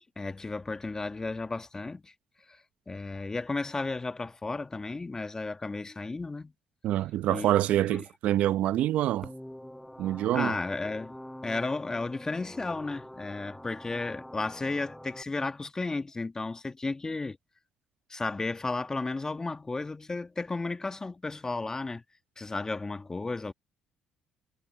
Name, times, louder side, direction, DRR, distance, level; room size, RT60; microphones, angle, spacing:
voice 1, 0.1-2.1 2.5-6.5 7.3-7.5 7.9-8.0 10.3-11.2 11.4-17.4 18.1-22.0 22.4-23.5, left 3 dB, 25° left, 1.7 m, -33 dB
voice 2, 6.8-9.3 10.0-10.5, right 13 dB, 70° right, 0.9 m, -26 dB
sound 1, 9.2-15.2, left 1 dB, 5° left, 6.5 m, -46 dB
hypercardioid pair, 60°, 2 cm